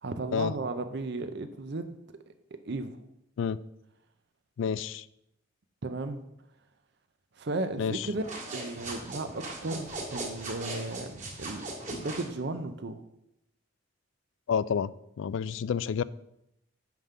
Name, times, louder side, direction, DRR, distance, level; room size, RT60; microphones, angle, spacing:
voice 1, 0.0-1.9 2.7-2.9 5.8-6.2 7.4-8.2 8.5-13.0, right 2 dB, 55° right, 9 dB, 0.6 m, -35 dB
voice 2, 4.6-5.1 7.8-8.1 14.5-14.9 15.2-16.0, left 7 dB, 70° left, 18 dB, 0.3 m, -29 dB
sound 1, 8.1-12.3, right 2 dB, 40° right, 2.0 m, -39 dB
9.2 x 3.7 x 6.7 m, 0.82 s
head